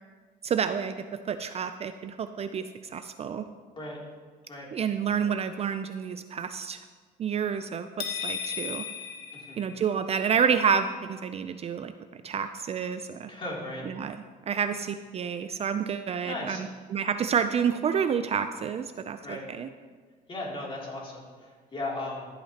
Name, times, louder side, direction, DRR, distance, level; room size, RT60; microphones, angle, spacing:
voice 1, 0.4-3.4 4.7-6.8 7.2-8.8 9.6-11.9 12.2-13.3 13.8-14.2 14.5-19.7, right 7 dB, 40° right, 9 dB, 0.4 m, -29 dB
sound 1, 8.0-10.2, left 6 dB, 65° left, 1.3 m, -35 dB
voice 2, 13.3-13.9 16.2-16.6 19.2-19.5 20.3-22.3, left 2 dB, 30° left, -4 dB, 2.9 m, -36 dB
13.5 x 8.7 x 2.9 m, 1.5 s
cardioid pair, 110°, 17 cm